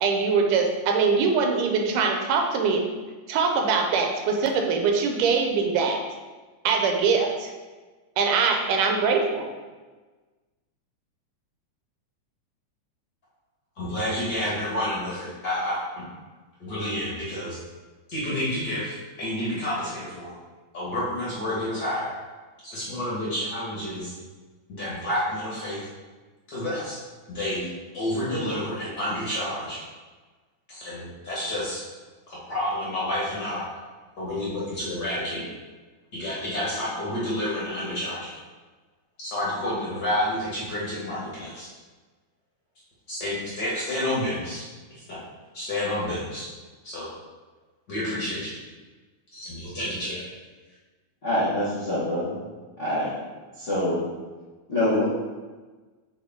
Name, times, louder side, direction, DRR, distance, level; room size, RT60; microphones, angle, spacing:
voice 1, 0.0-2.8 3.3-6.0 6.6-7.5 8.2-9.5, right 5 dB, 90° right, 2 dB, 2.4 m, -23 dB
voice 2, 13.8-16.0 16.6-17.6 18.1-20.3 20.7-22.1 22.6-24.1 24.7-25.8 26.5-27.0 27.3-29.8 30.7-31.8 32.3-33.6 34.2-35.4 36.1-38.4 39.2-41.7 43.1-45.2 45.5-46.5 46.8-47.1 47.9-48.6 49.3-50.3, left 1 dB, 40° left, -8 dB, 1.7 m, -29 dB
voice 3, 51.2-52.3 52.8-53.1 53.6-54.0 54.7-55.0, left 1 dB, 80° left, -10 dB, 0.6 m, -25 dB
7.9 x 3.8 x 3.6 m, 1.3 s
omnidirectional pair, 3.6 m